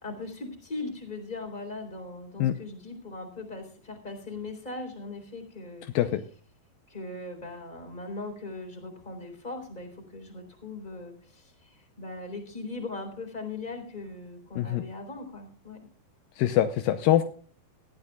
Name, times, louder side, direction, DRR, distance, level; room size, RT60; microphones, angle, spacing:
voice 1, 0.0-5.9 6.9-15.8, left 3 dB, 10° left, 3 dB, 3.4 m, -39 dB
voice 2, 16.4-17.2, left 12 dB, 85° left, 9 dB, 2.0 m, -23 dB
19.5 x 14.0 x 2.3 m, 0.44 s
omnidirectional pair, 4.9 m